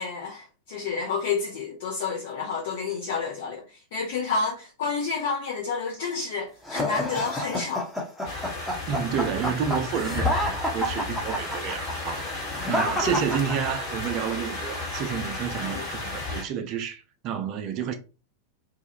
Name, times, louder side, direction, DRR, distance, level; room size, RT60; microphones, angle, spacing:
voice 1, 0.0-7.9 13.0-13.1 15.6-15.9, left 5 dB, 55° left, 0.7 m, -30 dB
sound 1, 6.7-14.1, equal, 5° left, 0.6 m, -29 dB
sound 2, 8.2-16.4, left 3 dB, 40° left, 1.2 m, -33 dB
voice 2, 8.9-17.9, right 8 dB, 40° right, 0.5 m, -30 dB
2.4 x 2.1 x 2.8 m
figure-of-eight pair, 90°, 0 cm